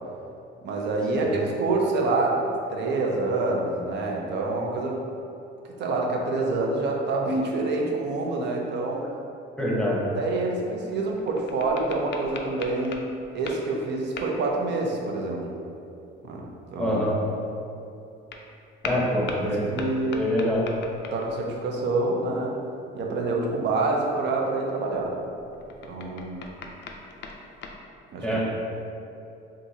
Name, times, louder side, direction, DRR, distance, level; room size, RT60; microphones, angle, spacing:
voice 1, 0.6-5.0 5.8-9.0 10.2-13.1 13.3-15.4 16.2-16.4 16.7-17.0 18.9-20.2 21.1-22.6 22.9-25.1 25.8-26.4 28.1-28.3, right 3 dB, 55° right, -1 dB, 0.6 m, -27 dB
voice 2, 9.6-10.0 16.8-17.2 18.8-19.7 20.1-20.6 28.2-28.4, equal, 5° left, -5 dB, 0.8 m, -25 dB
sound 1, 10.9-13.7 14.2-14.4 18.3-18.5 18.8-21.5 24.5-27.8, left 4 dB, 55° left, 0.4 m, -39 dB
3.6 x 2.6 x 2.7 m, 2.6 s
supercardioid pair, 90°, 21 cm